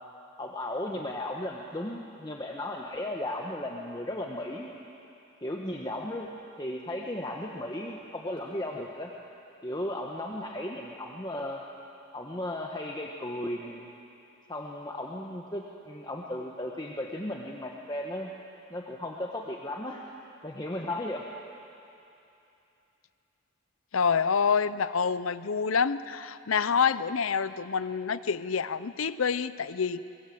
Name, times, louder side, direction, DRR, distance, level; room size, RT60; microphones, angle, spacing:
voice 1, 0.4-4.7 5.4-6.3 6.6-9.1 9.6-11.6 12.1-13.9 14.5-18.3 18.7-20.0 20.4-21.2, left 1 dB, 20° left, 0 dB, 1.2 m, -35 dB
voice 2, 23.9-30.0, left 6 dB, 85° left, 15 dB, 0.7 m, -27 dB
23.5 x 22.0 x 7.8 m, 2.8 s
head